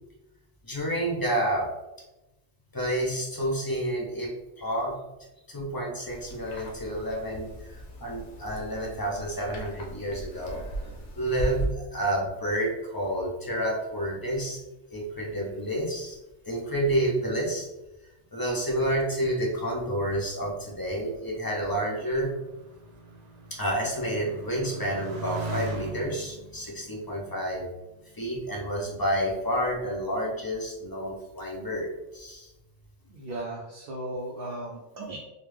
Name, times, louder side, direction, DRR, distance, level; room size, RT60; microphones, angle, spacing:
voice 1, 0.6-1.7 2.7-4.3 4.6-5.0 5.5-10.6 11.2-14.6 14.9-16.2 16.4-17.7 18.3-22.3 23.5-27.7 28.1-32.5, right 1 dB, 25° left, -2 dB, 0.5 m, -29 dB
sound 1, 6.0-11.7, right 1 dB, 75° left, 1.1 m, -37 dB
Motorcycle, 19.6-28.6 29.3-29.9, right 3 dB, 75° right, 1.0 m, -41 dB
voice 2, 33.1-35.2, right 1 dB, 60° right, -1 dB, 0.6 m, -36 dB
3.4 x 2.4 x 3.1 m, 1.0 s
omnidirectional pair, 1.2 m